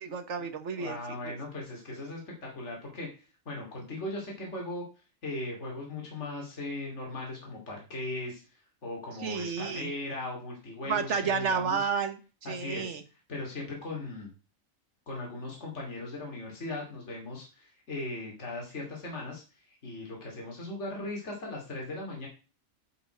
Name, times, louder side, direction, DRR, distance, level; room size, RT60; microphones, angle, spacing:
voice 1, 0.0-1.3 9.2-9.9 10.8-13.0, right 6 dB, 60° right, 8 dB, 1.5 m, -31 dB
voice 2, 0.7-3.1 3.5-4.8 5.2-8.4 8.8-11.9 12.4-13.0 13.3-14.3 15.1-19.4 19.7-22.3, left 2 dB, 60° left, -1 dB, 2.9 m, -38 dB
9.6 x 5.7 x 5.0 m, 0.33 s
omnidirectional pair, 1.4 m